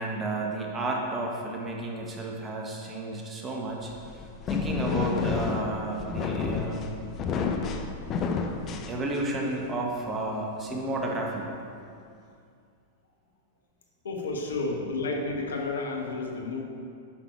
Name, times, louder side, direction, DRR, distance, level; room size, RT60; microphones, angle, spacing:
voice 1, 0.0-3.9 4.5-6.9 8.9-11.5, right 2 dB, 20° right, 0 dB, 1.4 m, -32 dB
sound 1, 3.8-9.5, left 5 dB, 35° left, 0.7 m, -30 dB
voice 2, 14.0-16.6, left 3 dB, 75° left, 1 dB, 1.2 m, -31 dB
8.7 x 6.1 x 4.7 m, 2.4 s
figure-of-eight pair, 100°, 0 cm